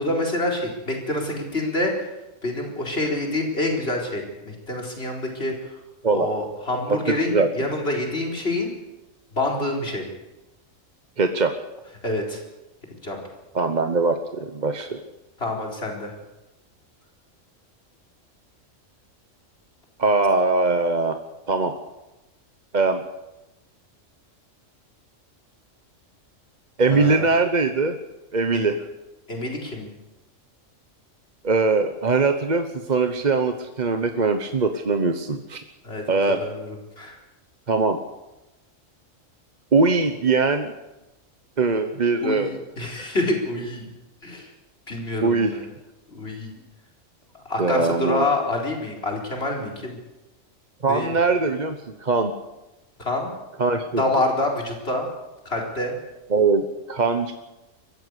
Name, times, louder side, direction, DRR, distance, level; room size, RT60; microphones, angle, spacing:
voice 1, 0.0-2.1 2.4-5.5 6.1-8.7 9.3-10.1 12.0-12.4 13.0-13.2 15.4-16.1 26.9-27.3 28.5-28.7 29.3-29.9 35.8-36.0 36.4-36.7 37.0-37.2 42.2-42.5 42.8-43.9 44.2-44.5 44.9-45.7 46.1-46.5 47.3-50.0 50.9-51.1 53.0-53.3 54.0-55.1 55.4-55.9, left 2 dB, 50° left, 0 dB, 4.6 m, -26 dB
voice 2, 6.9-7.5 11.2-11.5 13.5-15.0 20.0-21.2 21.5-21.7 22.7-23.0 26.8-28.0 28.3-28.8 31.4-35.6 36.1-36.4 37.7-38.0 39.7-40.7 41.6-42.7 45.2-45.6 47.6-48.3 50.8-52.3 53.6-54.0 56.3-56.6 56.9-57.3, right 3 dB, 35° right, 7 dB, 1.1 m, -21 dB
23.0 x 15.0 x 8.2 m, 1.0 s
omnidirectional pair, 1.4 m